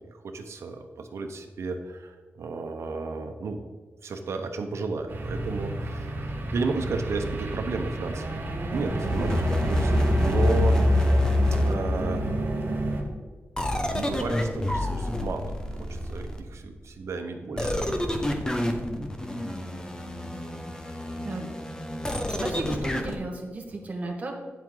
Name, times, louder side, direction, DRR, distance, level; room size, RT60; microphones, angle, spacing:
voice 1, 0.0-3.6 4.0-10.8 11.6-12.3 13.9-17.8, right 3 dB, 85° right, 5 dB, 0.9 m, -33 dB
sound 1, 5.1-13.0, right 2 dB, 50° right, 1.3 m, -30 dB
sound 2, 8.7-12.5 13.6-16.6 17.6-23.2, left 1 dB, 15° left, 0.8 m, -27 dB
voice 2, 22.3-24.4, right 2 dB, 30° right, 0 dB, 1.4 m, -35 dB
9.5 x 7.5 x 3.9 m, 1.4 s
wide cardioid pair, 175°, 5 cm